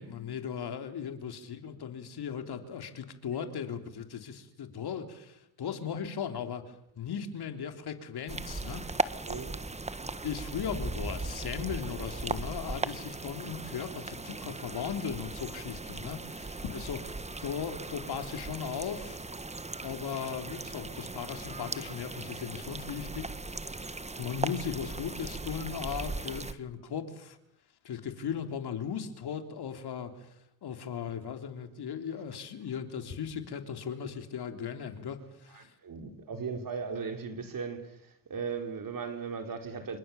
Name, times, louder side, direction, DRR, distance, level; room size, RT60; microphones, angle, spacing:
voice 1, 0.0-8.9 10.2-17.2 17.4-19.2 19.8-23.3 24.2-27.4 27.8-30.4 30.6-35.7, left 7 dB, 60° left, 3.5 m, -37 dB
sound 1, 8.3-26.5, right 3 dB, 15° right, 1.5 m, -38 dB
voice 2, 9.2-9.6 15.4-15.5 35.5-40.0, right 5 dB, 50° right, 4.3 m, -37 dB
28.0 x 25.5 x 7.1 m
supercardioid pair, 75°, 44 cm